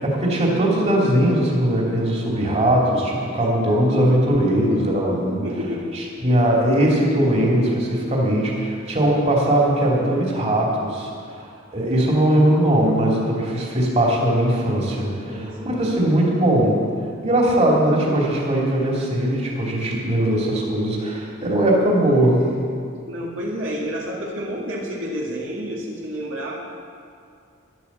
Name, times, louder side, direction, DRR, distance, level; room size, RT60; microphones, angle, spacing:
voice 1, 0.0-5.4 5.9-16.8 17.2-22.5, right 1 dB, 35° right, -3 dB, 2.9 m, -20 dB
voice 2, 5.3-5.9 15.3-16.0 23.1-26.5, equal, 70° right, -4 dB, 2.2 m, -30 dB
12.5 x 11.0 x 7.3 m, 2.3 s
head